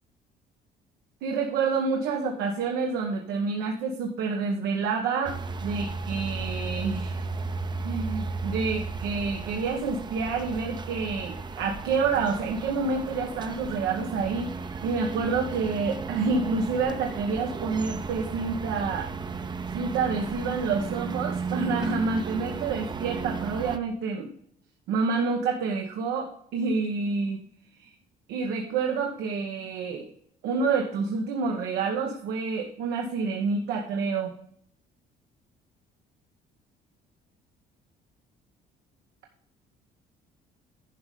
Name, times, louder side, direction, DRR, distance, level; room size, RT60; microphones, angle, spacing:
voice 1, 1.2-7.2 7.8-19.1 19.7-24.3 24.9-27.4 27.8-27.9 28.3-30.1 30.4-34.3, right 4 dB, 90° right, 2 dB, 1.2 m, -28 dB
sound 1, 5.2-23.8, right 4 dB, 25° right, 0.6 m, -34 dB
10.5 x 5.4 x 5.0 m, 0.64 s
cardioid pair, 110°, 17 cm